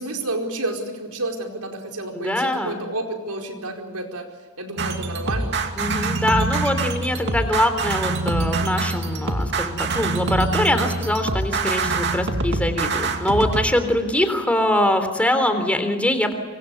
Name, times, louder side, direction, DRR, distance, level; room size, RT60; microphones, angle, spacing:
voice 1, 0.0-4.3 4.6-5.6, right 2 dB, 85° right, 3 dB, 4.7 m, -30 dB
voice 2, 2.1-2.8 5.8-16.3, left 1 dB, 5° left, 7 dB, 3.5 m, -23 dB
sound 1, 4.8-13.7, right 3 dB, 55° right, 2.5 m, -25 dB
25.0 x 25.0 x 8.1 m, 1.5 s
head